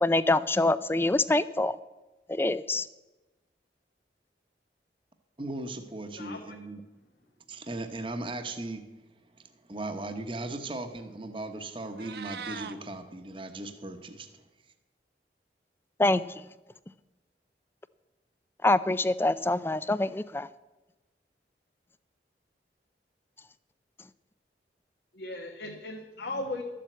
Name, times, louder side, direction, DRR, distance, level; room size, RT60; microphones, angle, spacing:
voice 1, 0.0-1.7 2.3-2.9 16.0-16.2 18.6-20.5, left 2 dB, 15° left, 16 dB, 0.4 m, -25 dB
voice 2, 5.4-6.8 7.5-8.9 9.4-14.4, right 2 dB, 30° right, 7 dB, 1.0 m, -38 dB
Meow, 11.8-12.8, right 6 dB, 65° right, 0.7 m, -40 dB
voice 3, 25.1-26.6, left 2 dB, 70° left, 1 dB, 1.5 m, -37 dB
13.0 x 7.6 x 8.0 m, 1.1 s
head